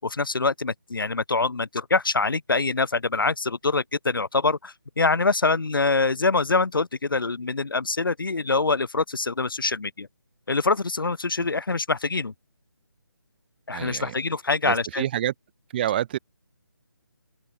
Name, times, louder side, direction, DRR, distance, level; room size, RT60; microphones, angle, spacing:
voice 1, 0.0-10.1 10.5-12.3 13.7-15.0, left 3 dB, 65° left, 6.6 m, -24 dB
voice 2, 13.7-14.1 14.6-15.3 15.7-16.2, right 12 dB, 25° right, 2.8 m, -27 dB
open air
figure-of-eight pair, 155°, 12 cm